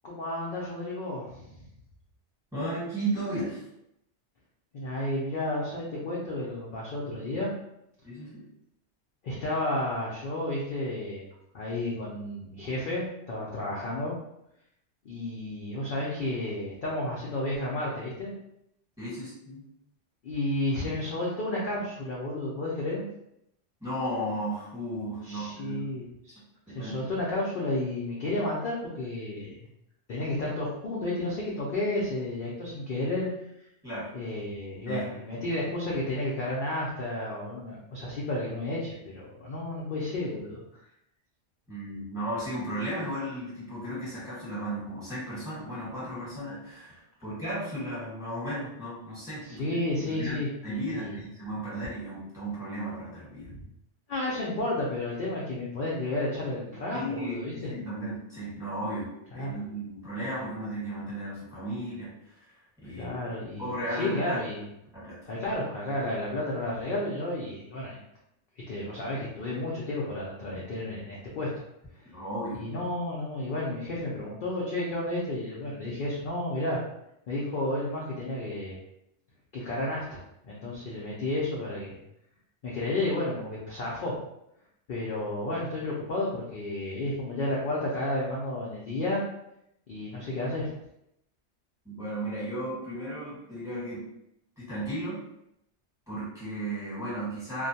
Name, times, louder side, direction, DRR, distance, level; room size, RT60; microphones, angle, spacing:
voice 1, 0.0-1.6 4.7-7.5 9.2-11.3 11.5-14.1 15.0-18.3 20.2-23.0 25.2-26.4 26.7-29.5 30.1-33.3 34.1-40.8 49.5-51.2 53.5-53.6 54.1-57.7 59.3-59.5 63.0-64.6 65.3-68.0 68.7-71.5 72.6-76.8 77.3-78.8 79.5-82.0 82.6-84.2 84.9-89.2 89.9-90.7, left 1 dB, 60° left, -5 dB, 0.6 m, -32 dB
voice 2, 2.5-3.6 8.0-8.4 19.0-19.6 23.8-25.8 26.7-27.1 33.8-34.1 34.9-35.0 41.7-49.6 50.1-53.5 56.9-63.2 63.6-64.4 64.9-65.3 72.1-72.6 91.8-94.0 94.6-95.2 96.1-97.7, right 1 dB, 5° right, -9 dB, 1.1 m, -35 dB
2.4 x 2.2 x 2.7 m, 0.80 s
omnidirectional pair, 1.2 m